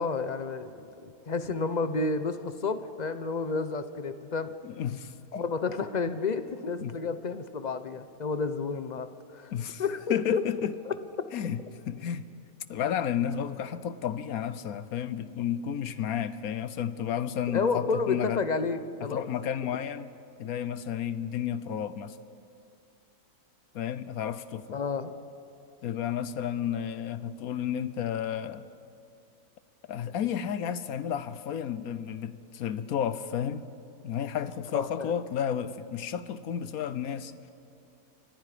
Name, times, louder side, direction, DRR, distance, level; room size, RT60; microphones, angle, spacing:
voice 1, 0.0-4.5 5.3-9.5 9.8-10.4 10.9-11.0 17.5-19.3 24.7-25.1 34.7-35.1, left 4 dB, 35° left, 10 dB, 0.8 m, -31 dB
voice 2, 4.6-5.4 6.8-7.0 9.5-9.8 10.1-10.7 11.3-12.3 12.7-18.4 19.0-20.1 20.4-22.2 23.7-24.8 25.8-28.7 29.9-33.7 34.0-37.5, left 9 dB, 65° left, 14 dB, 1.2 m, -32 dB
29.5 x 24.5 x 5.0 m, 2.5 s
omnidirectional pair, 1.7 m